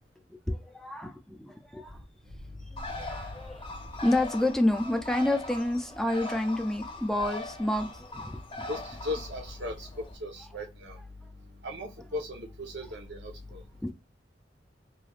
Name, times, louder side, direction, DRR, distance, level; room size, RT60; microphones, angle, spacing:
voice 1, 0.3-2.0 2.7-3.7 4.0-8.7 13.8-13.9, left 1 dB, 5° left, 0.3 m, -29 dB
Bird, 2.8-10.2, left 2 dB, 30° left, 0.7 m, -41 dB
voice 2, 8.7-9.9 10.2-11.0 11.6-13.6, left 1 dB, 85° right, 0.9 m, -37 dB
3.2 x 2.7 x 2.4 m
head